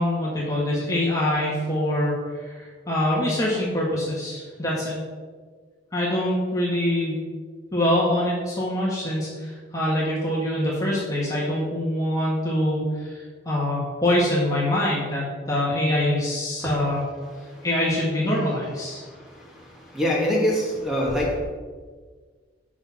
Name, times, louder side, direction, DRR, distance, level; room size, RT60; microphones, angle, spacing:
voice 1, 0.0-5.0 5.9-7.3 7.7-17.0 17.6-19.0, left 1 dB, 20° left, -6 dB, 1.7 m, -24 dB
voice 2, 19.9-21.4, left 1 dB, ahead, -4 dB, 2.1 m, -23 dB
8.7 x 6.2 x 5.7 m, 1.5 s
head